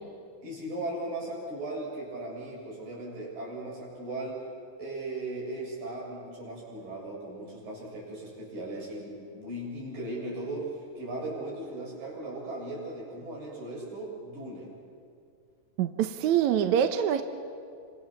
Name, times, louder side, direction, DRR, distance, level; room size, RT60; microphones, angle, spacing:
voice 1, 0.4-4.4 4.8-14.7, right 2 dB, 85° right, -4 dB, 9.0 m, -37 dB
voice 2, 15.8-17.2, right 9 dB, 70° right, 8 dB, 2.1 m, -25 dB
29.0 x 25.0 x 7.1 m, 2.3 s
omnidirectional pair, 3.8 m